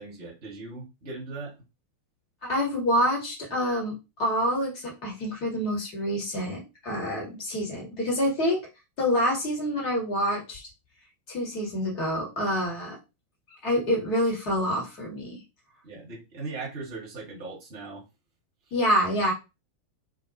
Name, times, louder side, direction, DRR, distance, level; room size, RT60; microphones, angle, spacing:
voice 1, 0.0-1.5 15.8-18.0, right 3 dB, 50° right, -3 dB, 1.0 m, -39 dB
voice 2, 2.4-3.9 4.2-8.6 9.0-10.6 11.3-13.0 13.6-15.4 18.7-19.3, equal, 40° left, -1 dB, 1.4 m, -27 dB
2.4 x 2.3 x 2.7 m, 0.26 s
figure-of-eight pair, 90°, 0 cm